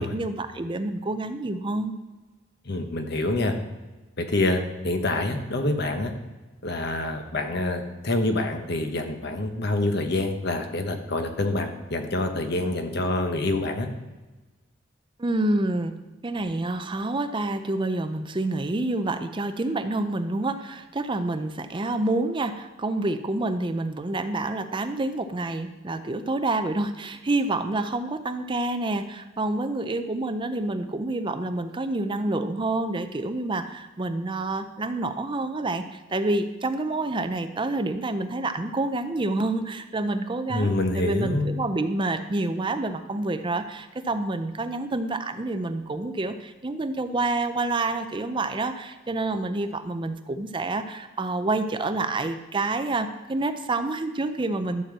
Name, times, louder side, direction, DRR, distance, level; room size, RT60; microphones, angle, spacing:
voice 1, 0.0-2.0 15.2-15.9 16.2-54.8, right 2 dB, 25° right, 9 dB, 0.5 m, -28 dB
voice 2, 2.6-3.5 4.2-6.1 6.6-13.9 40.5-41.5, left 2 dB, 55° left, 5 dB, 1.2 m, -26 dB
12.0 x 4.4 x 7.5 m, 1.2 s
head